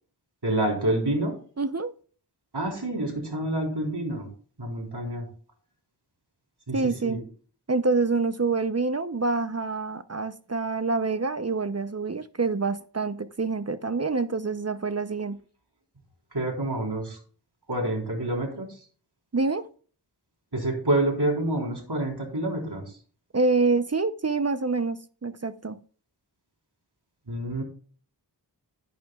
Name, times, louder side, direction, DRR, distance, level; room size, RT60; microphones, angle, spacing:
voice 1, 0.4-1.4 2.5-4.3 4.6-5.3 6.7-7.2 16.3-17.2 17.7-18.8 20.5-23.0 27.3-27.6, right 1 dB, 65° right, 4.0 m, -28 dB
voice 2, 1.6-1.9 6.7-7.2 7.7-15.4 19.3-19.7 23.3-25.8, right 3 dB, 35° right, 0.6 m, -26 dB
11.0 x 11.0 x 2.3 m
wide cardioid pair, 50°, 43 cm